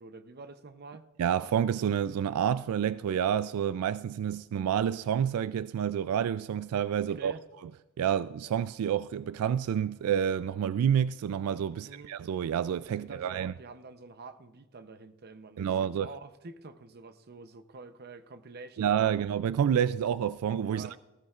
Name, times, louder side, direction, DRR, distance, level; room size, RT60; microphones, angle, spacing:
voice 1, 0.0-1.1 7.2-7.4 11.7-12.1 12.9-19.2 19.7-19.8 20.7-21.0, right 3 dB, 45° right, 0.7 m, -47 dB
voice 2, 1.2-7.3 8.0-13.5 15.6-16.1 18.8-21.0, right 9 dB, 85° right, 0.3 m, -29 dB
18.5 x 15.5 x 2.4 m
head